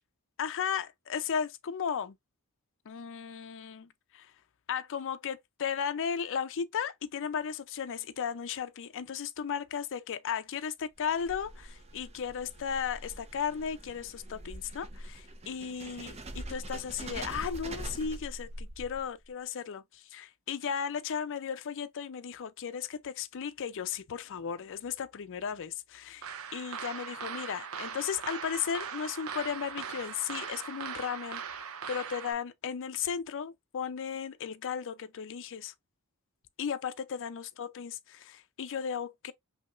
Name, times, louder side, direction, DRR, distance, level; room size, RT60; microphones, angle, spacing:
voice 1, 0.4-2.2 2.9-3.9 4.1-4.3 4.7-26.3 26.5-31.4 31.9-35.7 36.6-39.3, left 7 dB, 60° left, 0.5 m, -35 dB
sound 1, 10.9-19.3, right 1 dB, 30° right, 0.6 m, -43 dB
sound 2, 26.2-32.3, right 7 dB, 65° right, 0.7 m, -40 dB
5.3 x 2.8 x 2.4 m
head